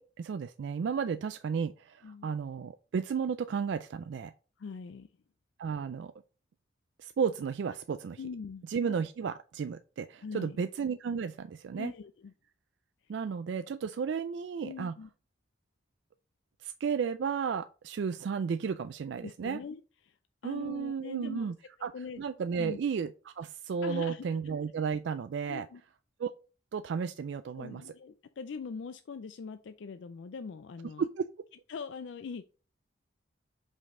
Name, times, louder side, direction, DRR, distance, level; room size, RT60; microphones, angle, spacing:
voice 1, 0.0-4.3 5.6-6.1 7.0-8.2 8.7-11.9 13.1-14.9 16.6-19.6 20.4-21.5 21.8-21.9 22.2-25.7 26.2-26.4 26.7-27.8 31.0-31.3, right 6 dB, 65° right, 11 dB, 0.3 m, -33 dB
voice 2, 4.6-5.1 8.2-8.7 10.2-10.6 11.8-12.3 14.6-15.1 19.2-20.2 20.4-21.5 21.9-22.2 22.6-22.8 23.8-24.3 25.5-25.8 27.6-31.1 31.7-32.4, left 5 dB, 70° left, 10 dB, 0.4 m, -42 dB
5.4 x 5.2 x 3.7 m, 0.36 s
head